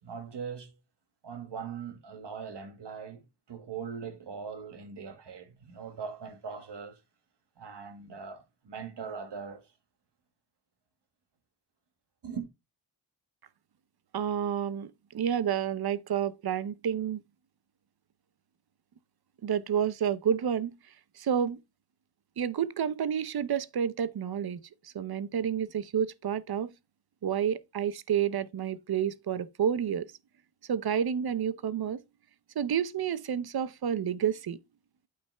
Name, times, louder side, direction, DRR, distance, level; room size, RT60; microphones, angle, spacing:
voice 1, 0.0-0.7 1.2-3.2 3.5-7.0 7.6-9.7 12.2-12.5, right 6 dB, 80° right, 1.8 m, -40 dB
voice 2, 14.1-17.2 19.4-20.7 21.2-21.6 22.4-26.7 27.2-30.1 30.7-32.0 32.6-34.6, right 8 dB, 65° right, 0.8 m, -30 dB
8.7 x 3.3 x 5.4 m
wide cardioid pair, 105°, 41 cm